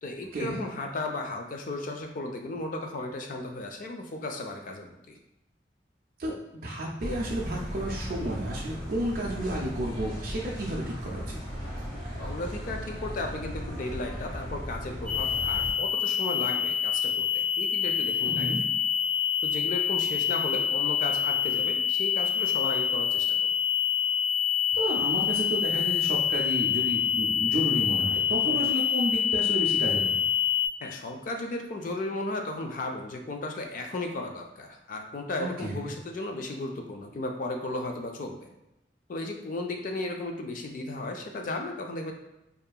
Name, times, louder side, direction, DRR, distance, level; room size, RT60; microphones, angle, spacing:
voice 1, 0.0-5.2 12.2-18.5 19.4-23.5 28.4-28.7 30.8-38.5 39.1-42.1, left 2 dB, 50° left, 3 dB, 0.3 m, -35 dB
voice 2, 6.2-11.4 18.2-18.6 24.7-30.2 35.4-35.8, right 1 dB, 55° right, -4 dB, 0.4 m, -32 dB
sound 1, 7.0-15.7, equal, 25° left, 1.2 m, -37 dB
sound 2, 15.1-30.7, left 8 dB, 70° left, 1.0 m, -26 dB
2.7 x 2.4 x 2.2 m, 0.91 s
head